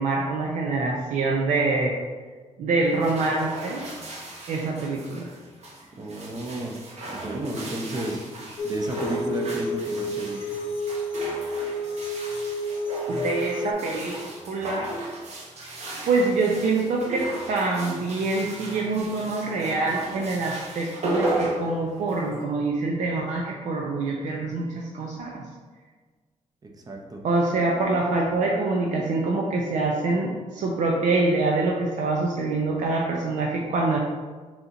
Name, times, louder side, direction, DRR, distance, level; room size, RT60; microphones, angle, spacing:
voice 1, 0.0-1.9 2.6-3.8 4.5-5.3 13.1-14.2 14.5-14.9 16.0-25.4 27.2-34.0, right 3 dB, 75° right, -1 dB, 0.5 m, -25 dB
sound 1, 2.8-22.4, right 2 dB, 60° right, 0.9 m, -35 dB
voice 2, 6.0-10.6 26.6-27.3, right 1 dB, 30° right, 2 dB, 0.7 m, -32 dB
sound 2, 8.6-13.7, left 1 dB, 50° left, 0.6 m, -30 dB
4.1 x 2.9 x 3.8 m, 1.4 s
cardioid pair, 95°, 12 cm